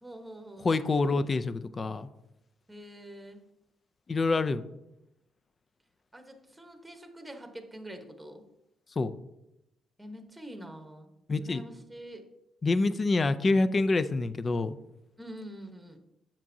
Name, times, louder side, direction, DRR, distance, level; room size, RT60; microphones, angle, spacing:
voice 1, 0.0-0.8 2.7-3.4 6.1-8.4 10.0-11.1 11.4-12.2 15.2-16.0, right 1 dB, 10° right, 5 dB, 1.1 m, -45 dB
voice 2, 0.6-2.1 4.1-4.7 9.0-9.1 11.3-11.6 12.6-14.8, left 3 dB, 35° left, 13 dB, 0.4 m, -26 dB
7.4 x 7.3 x 2.7 m, 0.87 s
cardioid pair, 90°, 0 cm